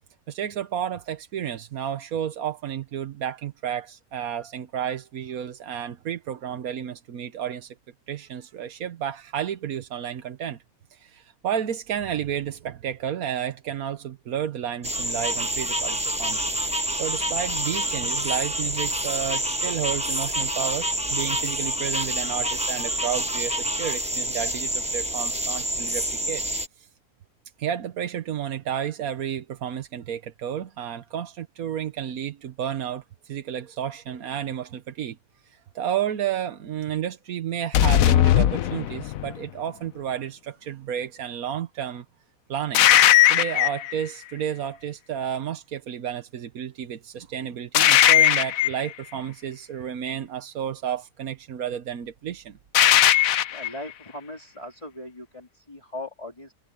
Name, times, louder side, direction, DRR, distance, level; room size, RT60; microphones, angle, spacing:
voice 1, 0.3-7.7 8.1-10.6 10.9-16.5 16.9-26.4 26.8-26.9 27.6-35.2 35.4-42.0 42.5-42.9 43.3-52.6, right 9 dB, 85° right, 1.4 m, -31 dB
sound 1, 14.8-26.7, right 1 dB, 5° right, 1.1 m, -27 dB
sound 2, 37.7-39.4 42.7-43.9 47.7-48.9 52.7-53.7, left 12 dB, 75° left, 1.1 m, -18 dB
voice 2, 53.5-56.5, left 1 dB, 20° left, 3.2 m, -39 dB
omnidirectional pair, 1.5 m